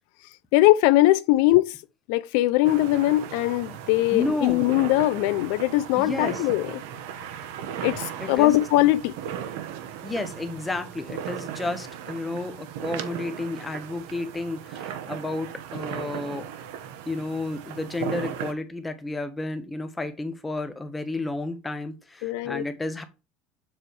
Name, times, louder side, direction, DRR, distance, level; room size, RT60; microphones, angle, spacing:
voice 1, 0.5-1.8 2.1-6.8 7.8-9.1 22.2-22.6, left 16 dB, 70° left, 0.4 m, -21 dB
sound 1, 2.6-18.5, right 9 dB, 80° right, 0.9 m, -37 dB
voice 2, 4.1-4.6 6.0-6.4 8.2-8.6 10.0-16.6 17.1-23.0, left 2 dB, 10° left, 0.9 m, -31 dB
7.3 x 3.3 x 4.4 m
cardioid pair, 165°, 0 cm